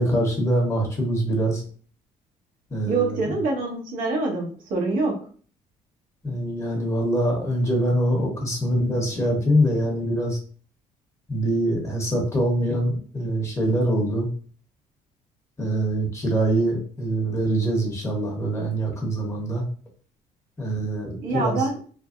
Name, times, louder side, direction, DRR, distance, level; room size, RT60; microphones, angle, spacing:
voice 1, 0.0-1.6 2.7-3.3 6.2-10.4 11.3-14.3 15.6-19.6 20.6-21.6, right 1 dB, 20° left, -1 dB, 1.0 m, -24 dB
voice 2, 2.9-5.2 21.2-21.8, right 3 dB, 75° right, 1 dB, 1.0 m, -25 dB
3.2 x 2.1 x 2.5 m, 0.43 s
cardioid pair, 130°, 15 cm